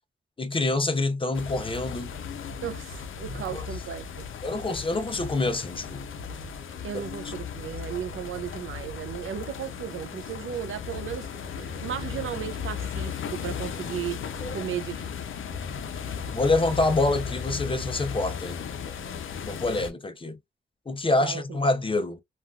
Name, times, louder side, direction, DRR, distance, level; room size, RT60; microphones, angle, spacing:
voice 1, 0.4-2.1 3.3-3.6 4.4-6.0 14.4-14.5 16.3-18.6 19.4-20.4 20.9-22.2, left 2 dB, 25° left, 0.5 m, -26 dB
sound 1, 1.3-19.9, left 7 dB, 80° left, 0.5 m, -36 dB
voice 2, 2.6-4.3 6.8-14.2 14.5-15.1 21.2-21.6, right 9 dB, 85° right, 0.4 m, -35 dB
3.3 x 2.3 x 2.2 m
wide cardioid pair, 120°, 20 cm